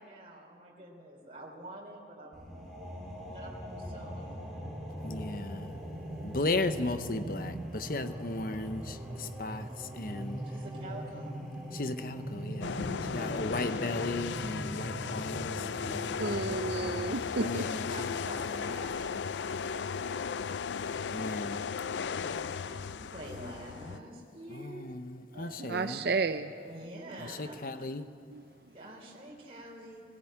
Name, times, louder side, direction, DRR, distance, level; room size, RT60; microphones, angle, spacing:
voice 1, 0.0-2.4 3.3-4.3 10.5-11.3 12.9-14.0 15.5-16.4 17.4-17.6 17.9-20.4 21.2-21.5 21.8-24.8 26.6-27.8 28.7-30.0, right 1 dB, 35° right, -2 dB, 3.5 m, -47 dB
sound 1, 2.3-17.3, right 1 dB, ahead, 4.0 m, -41 dB
voice 2, 5.0-5.7 6.2-10.4 11.7-12.8 13.1-15.6 17.4-18.1 21.1-21.7 24.5-26.0 27.2-28.0, left 2 dB, 50° left, 10 dB, 0.8 m, -35 dB
sound 2, 12.6-24.0, left 6 dB, 90° left, 0.4 m, -36 dB
voice 3, 16.2-17.6 25.3-26.8 28.3-28.4, right 4 dB, 60° right, 9 dB, 0.5 m, -33 dB
17.5 x 17.0 x 8.8 m, 2.3 s
head